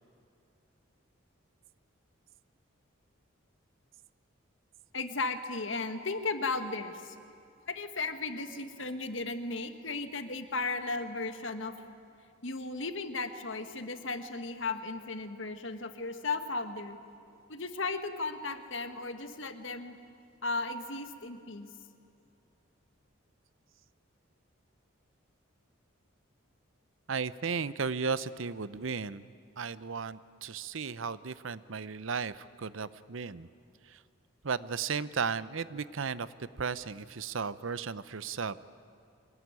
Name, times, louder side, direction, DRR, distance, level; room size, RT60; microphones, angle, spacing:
voice 1, 4.9-7.2 7.7-11.7 12.4-17.0 17.5-20.0 20.4-21.7, left 3 dB, 65° left, 8 dB, 1.7 m, -35 dB
voice 2, 27.1-29.2 29.6-33.5 33.9-34.0 34.4-38.7, right 5 dB, 75° right, 16 dB, 0.7 m, -35 dB
24.5 x 20.5 x 9.6 m, 2.5 s
head